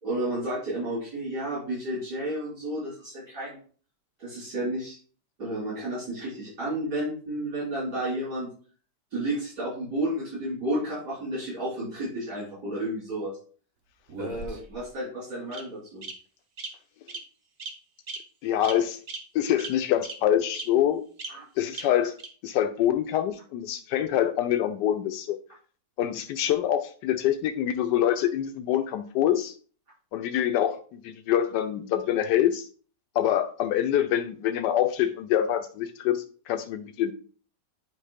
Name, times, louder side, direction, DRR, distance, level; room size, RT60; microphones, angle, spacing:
voice 1, 0.0-3.6 4.2-5.0 5.4-8.5 9.1-13.4 14.2-16.0 21.3-21.4, right 1 dB, 70° right, -11 dB, 4.3 m, -31 dB
Bird vocalization bird call bird song, 14.1-14.9 15.5-15.6 16.0-16.1 16.6-16.7 17.1-17.2 17.6-17.7 18.1-18.2 18.6-18.8 19.1-19.2 19.6-19.7 20.0-20.1 20.5-20.6 21.2-21.3 21.7-21.8 22.2-22.3, right 4 dB, 55° right, 1.5 m, -36 dB
voice 2, 18.4-19.0 19.3-21.0 21.6-22.1 22.4-25.4 26.0-29.5 30.1-32.6 33.1-37.1, left 11 dB, 90° left, 7 dB, 1.2 m, -25 dB
9.2 x 3.2 x 5.0 m, 0.42 s
omnidirectional pair, 1.8 m